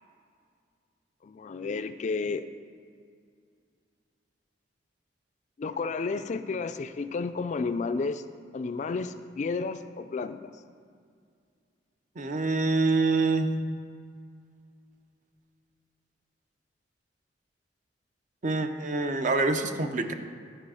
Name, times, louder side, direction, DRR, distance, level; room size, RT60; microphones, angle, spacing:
voice 1, 1.2-2.5 5.6-8.2 8.5-10.5, left 4 dB, 45° left, 11 dB, 0.3 m, -32 dB
voice 2, 12.2-13.5 18.4-20.1, right 3 dB, 45° right, 8 dB, 0.6 m, -26 dB
10.5 x 5.4 x 4.9 m, 2.2 s
head